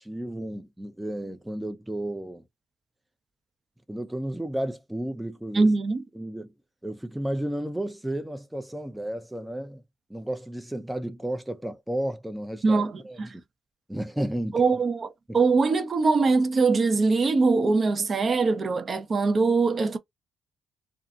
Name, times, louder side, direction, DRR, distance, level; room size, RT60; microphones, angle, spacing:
voice 1, 0.0-2.4 3.9-5.7 6.2-6.5 6.8-9.8 10.1-13.2 13.9-14.6 15.3-15.4, right 1 dB, 5° right, 0.5 m, -32 dB
voice 2, 5.5-6.0 12.6-13.3 14.5-20.0, right 4 dB, 45° right, 0.7 m, -22 dB
2.6 x 2.4 x 2.4 m
supercardioid pair, 60°, 0 cm